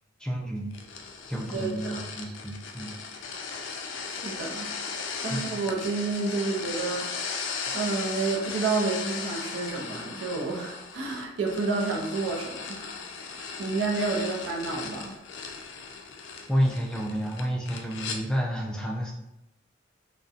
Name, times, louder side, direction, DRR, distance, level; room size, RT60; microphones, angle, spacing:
voice 1, 0.2-0.7 1.2-2.9 5.3-5.6 16.5-19.1, equal, 5° left, -1 dB, 0.3 m, -30 dB
sound 1, 0.7-18.2, left 5 dB, 80° left, 0.3 m, -37 dB
voice 2, 1.5-2.0 4.1-4.7 5.2-7.5 7.7-13.0 13.3-15.2, right 3 dB, 65° right, -1 dB, 0.4 m, -30 dB
2.6 x 2.1 x 2.3 m, 0.90 s
head